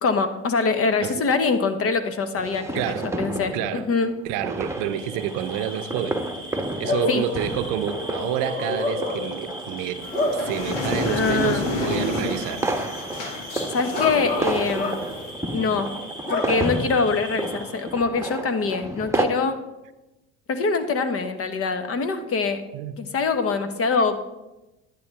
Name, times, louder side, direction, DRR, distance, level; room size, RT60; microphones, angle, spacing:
voice 1, 0.0-4.1 7.1-7.2 11.0-11.6 13.7-14.9 15.5-15.9 16.3-19.6 20.5-22.6 23.0-24.2, left 4 dB, 40° left, 1.4 m, -24 dB
sound 1, 2.4-19.3, right 2 dB, 10° right, 1.2 m, -32 dB
voice 2, 2.7-3.1 3.5-3.9 4.2-6.2 6.5-10.1 10.3-12.7 22.7-23.0, right 10 dB, 65° right, 0.7 m, -29 dB
Bark / Cricket, 4.6-17.9, left 1 dB, 25° left, 3.0 m, -32 dB
sound 2, 10.0-15.3, left 2 dB, 70° left, 2.5 m, -30 dB
11.0 x 9.7 x 3.5 m
hypercardioid pair, 70°, 35 cm